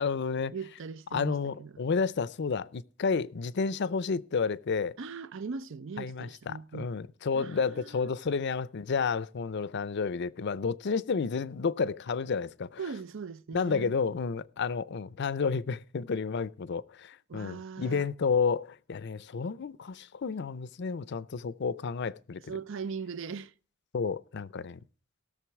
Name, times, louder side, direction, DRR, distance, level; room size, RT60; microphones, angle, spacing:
voice 1, 0.0-0.5 1.1-4.9 6.0-12.8 13.5-22.4 23.9-24.8, left 5 dB, 55° left, 0.5 m, -31 dB
voice 2, 0.5-1.8 5.0-6.9 7.3-8.1 12.8-13.9 17.3-18.1 22.5-23.5, right 5 dB, 65° right, 0.5 m, -40 dB
17.5 x 6.7 x 4.7 m
head